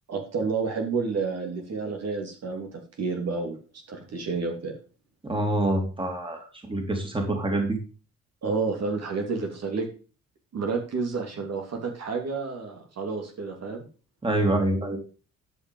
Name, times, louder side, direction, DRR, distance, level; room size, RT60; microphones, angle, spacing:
voice 1, 0.1-3.6 3.9-4.7 8.4-9.9 10.5-13.9, right 4 dB, 55° right, 2 dB, 2.7 m, -30 dB
voice 2, 5.2-6.4 6.7-7.8 14.2-15.0, right 1 dB, 15° right, 3 dB, 2.9 m, -25 dB
11.5 x 5.6 x 5.4 m, 0.37 s
cardioid pair, 90°, 30 cm